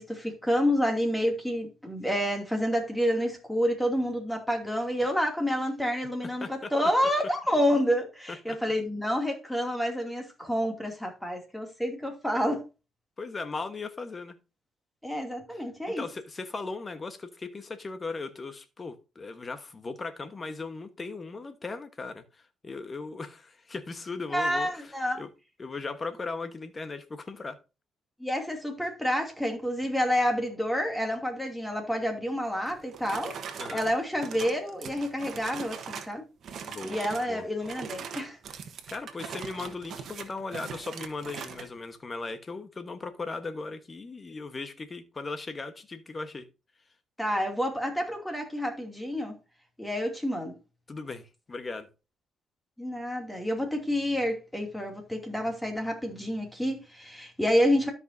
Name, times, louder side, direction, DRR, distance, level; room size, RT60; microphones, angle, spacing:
voice 1, 0.0-12.6 15.0-16.0 24.3-25.2 28.2-33.4 33.7-36.3 36.8-38.4 47.2-49.3 49.8-50.5 52.8-57.9, equal, 5° left, 2.5 m, -28 dB
voice 2, 6.4-6.7 8.5-8.6 13.2-14.4 15.5-25.3 25.6-27.6 33.6-33.9 36.6-37.0 37.3-37.4 38.9-46.5 50.9-51.9, left 3 dB, 30° left, 1.2 m, -38 dB
sound 1, 32.6-36.2 36.4-37.3 37.6-41.7, right 7 dB, 65° right, 1.2 m, -41 dB
13.0 x 5.4 x 2.7 m
cardioid pair, 90°, 0 cm